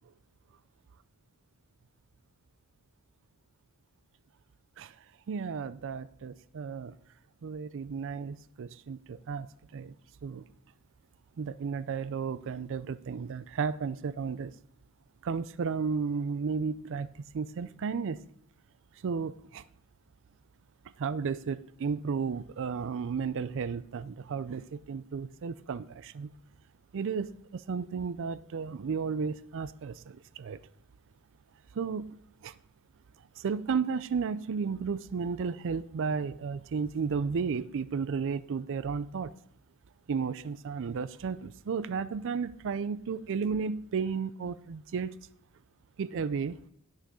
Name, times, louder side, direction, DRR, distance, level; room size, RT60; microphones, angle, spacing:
voice 1, 5.3-6.9 7.4-9.5 9.7-9.9 10.2-10.5 11.4-14.5 15.2-17.1 17.3-18.2 19.0-19.6 21.0-26.3 26.9-27.3 27.5-30.6 31.8-32.2 32.4-32.5 33.4-39.3 40.1-45.1 46.0-46.6, right 5 dB, 60° right, 0.4 m, -33 dB
11.0 x 6.5 x 4.7 m
head